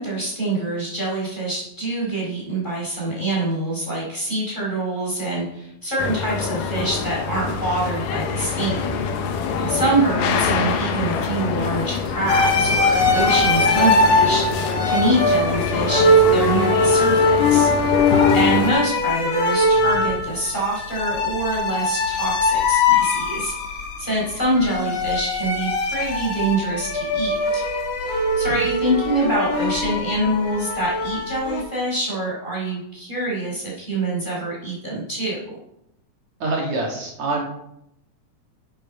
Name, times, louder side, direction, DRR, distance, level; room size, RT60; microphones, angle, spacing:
voice 1, 0.0-9.0 9.7-17.7 18.3-23.5 24.0-27.6 28.1-35.4, right 2 dB, 15° left, -5 dB, 5.0 m, -25 dB
sound 1, 6.0-18.7, left 6 dB, 85° left, 2.7 m, -25 dB
sound 2, 12.3-31.6, left 2 dB, 55° left, 2.7 m, -21 dB
voice 2, 36.4-37.4, right 2 dB, 60° right, -1 dB, 3.0 m, -26 dB
12.5 x 8.8 x 5.4 m, 0.81 s
omnidirectional pair, 3.7 m